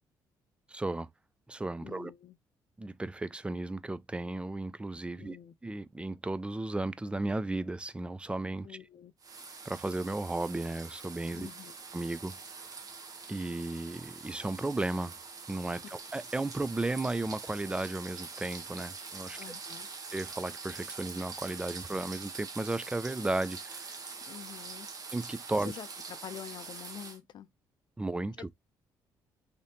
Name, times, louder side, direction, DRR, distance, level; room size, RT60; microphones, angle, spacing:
voice 1, 0.7-1.1 1.5-2.1 2.8-5.4 5.6-8.8 9.6-11.5 11.9-12.4 13.3-15.2 15.5-19.4 20.1-24.0 25.1-25.7 28.0-28.5, right 2 dB, 10° right, 0.4 m, -34 dB
voice 2, 1.8-2.4 5.2-5.5 8.6-9.1 11.3-11.7 15.9-16.0 19.4-19.9 24.3-24.9 25.6-27.5, left 10 dB, 60° left, 0.5 m, -46 dB
sound 1, 9.2-27.2, right 4 dB, 45° right, 0.9 m, -44 dB
3.3 x 2.7 x 2.8 m
supercardioid pair, 60°, 9 cm